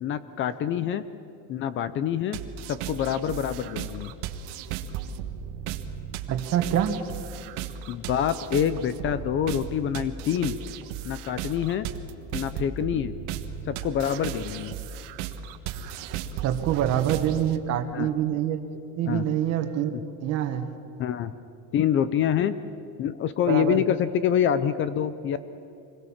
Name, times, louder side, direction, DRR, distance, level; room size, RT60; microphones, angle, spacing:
voice 1, 0.0-1.0 1.5-2.4 2.7-4.1 7.9-10.6 11.0-11.9 12.3-13.2 13.7-14.7 17.9-18.1 19.0-19.3 19.9-20.0 21.0-21.3 21.7-22.6 23.0-25.4, left 9 dB, 35° left, 14 dB, 0.6 m, -26 dB
sound 1, 2.3-17.6, right 9 dB, 75° right, 1.5 m, -36 dB
voice 2, 6.3-7.0 16.4-18.6 19.0-19.9 20.2-20.7 23.5-23.8, right 10 dB, 45° right, 7 dB, 1.7 m, -25 dB
26.0 x 21.0 x 7.4 m, 2.6 s
cardioid pair, 165°, 36 cm